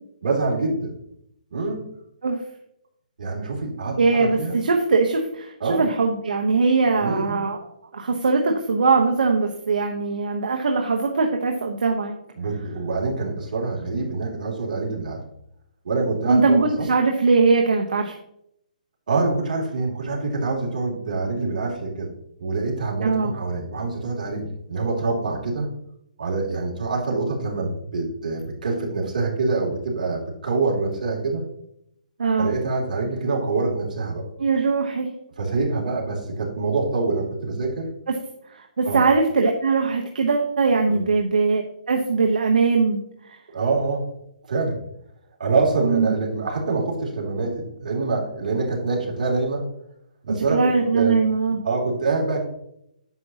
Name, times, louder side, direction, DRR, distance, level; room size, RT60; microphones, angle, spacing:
voice 1, 0.2-0.9 1.5-1.8 3.2-4.6 5.6-5.8 7.0-7.4 12.4-15.2 15.8-16.9 19.1-22.1 22.4-25.7 26.2-31.4 32.4-34.3 35.4-37.9 38.8-39.1 40.9-41.0 43.5-44.1 44.5-44.8 45.4-49.6 50.2-51.1 51.6-52.4, right 3 dB, 65° right, -2 dB, 2.9 m, -25 dB
voice 2, 4.0-7.6 7.9-12.2 16.3-18.1 23.0-23.3 32.2-32.5 34.4-35.1 38.5-43.0 43.3-43.4 45.8-46.1 50.5-51.6, right 4 dB, 80° right, 2 dB, 1.1 m, -21 dB
9.6 x 6.9 x 2.9 m, 0.75 s
hypercardioid pair, 160°, 5 cm